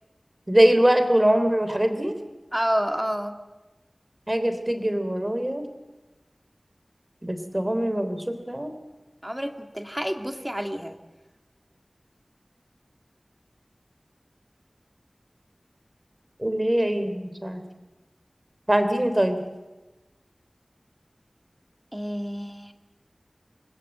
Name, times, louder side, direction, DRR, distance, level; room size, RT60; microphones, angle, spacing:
voice 1, 0.5-2.1 4.3-5.6 7.2-8.7 16.4-17.6 18.7-19.4, right 1 dB, 30° right, 8 dB, 3.2 m, -22 dB
voice 2, 2.5-3.3 9.2-11.0 21.9-22.7, equal, 10° right, 6 dB, 2.0 m, -29 dB
26.5 x 20.0 x 7.9 m, 1.1 s
wide cardioid pair, 40°, 0 cm